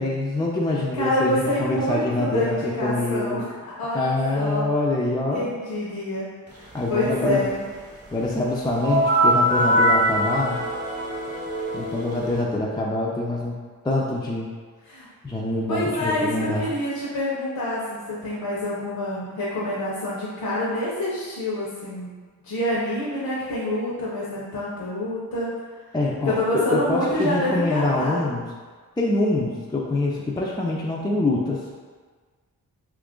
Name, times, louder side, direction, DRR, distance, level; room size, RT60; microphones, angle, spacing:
voice 1, 0.0-3.4 3.9-5.5 6.7-7.4 8.1-10.6 11.7-13.6 13.8-14.5 15.2-16.7 25.9-28.4 29.0-31.7, left 2 dB, 15° left, -3 dB, 0.3 m, -25 dB
voice 2, 0.9-4.6 5.3-7.6 14.8-15.1 15.7-25.5 26.2-28.2, left 1 dB, 75° left, -8 dB, 0.7 m, -27 dB
sound 1, 8.8-12.4, right 1 dB, 30° right, 0.9 m, -22 dB
2.8 x 2.4 x 3.6 m, 1.5 s
cardioid pair, 75°, 36 cm